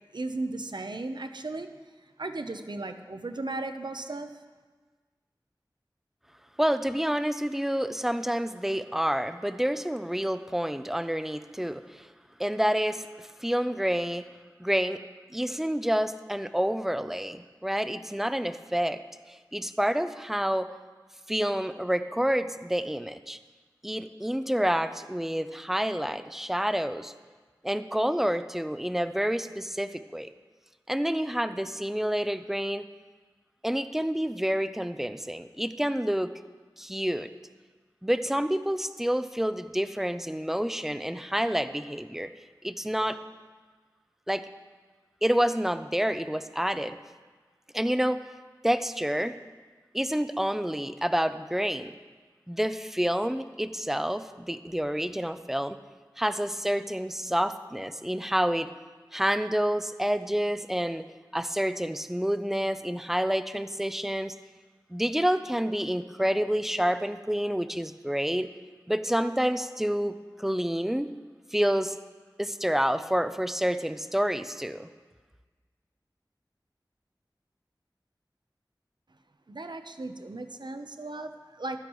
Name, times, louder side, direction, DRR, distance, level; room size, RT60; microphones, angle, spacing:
voice 1, 0.1-1.7 2.2-4.3 79.5-81.8, right 2 dB, 70° right, 8 dB, 0.7 m, -36 dB
voice 2, 6.6-12.1 12.4-14.2 14.6-15.0 15.3-19.0 19.3-20.7 21.3-23.4 23.8-27.1 27.6-30.3 30.9-32.9 33.6-36.4 36.8-37.3 38.0-42.3 42.6-43.2 44.3-44.5 45.2-47.0 47.7-48.2 48.6-49.4 49.9-51.9 52.5-55.8 56.2-58.7 59.1-61.0 61.3-64.4 64.9-68.5 68.9-70.1 70.4-71.2 71.5-72.0 72.4-74.9, equal, 5° right, 10 dB, 0.5 m, -28 dB
15.0 x 12.0 x 3.1 m, 1.4 s
wide cardioid pair, 50°, 8 cm